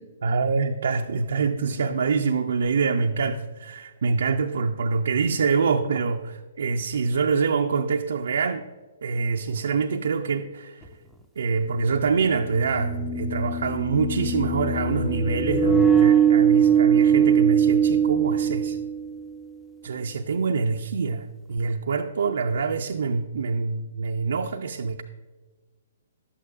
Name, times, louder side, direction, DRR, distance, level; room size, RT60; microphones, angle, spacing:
voice 1, 0.2-8.7 9.0-10.9 11.4-18.8 19.8-25.0, right 5 dB, 75° right, 3 dB, 0.4 m, -25 dB
sound 1, 10.9-11.0 12.4-19.3, right 7 dB, ahead, 0.6 m, -21 dB
11.5 x 8.4 x 2.4 m, 1.3 s
hypercardioid pair, 135°, 0 cm